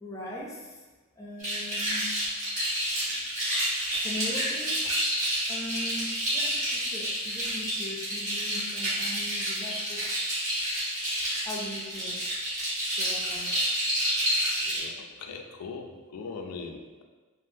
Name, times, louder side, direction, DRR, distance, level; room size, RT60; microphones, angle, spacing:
voice 1, 0.0-0.8 1.2-2.1 2.9-3.2 4.0-5.2 5.5-10.2 11.2-12.2 12.9-13.6, left 1 dB, 15° left, -4 dB, 0.3 m, -40 dB
sound 1, 1.4-14.8, equal, 35° right, 1.2 m, -29 dB
voice 2, 14.6-17.0, left 4 dB, 90° left, 4 dB, 0.4 m, -40 dB
3.4 x 2.0 x 2.6 m, 1.3 s
head